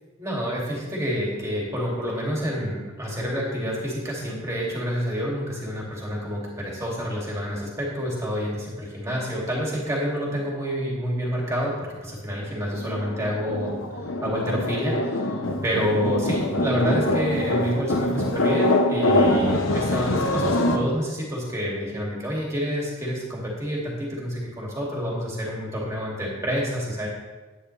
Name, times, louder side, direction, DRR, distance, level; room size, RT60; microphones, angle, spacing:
voice 1, 0.2-13.8 14.2-27.1, equal, 15° right, -4 dB, 2.5 m, -28 dB
sound 1, 12.8-20.8, left 1 dB, 85° left, 0.9 m, -24 dB
10.5 x 9.6 x 3.3 m, 1.2 s
head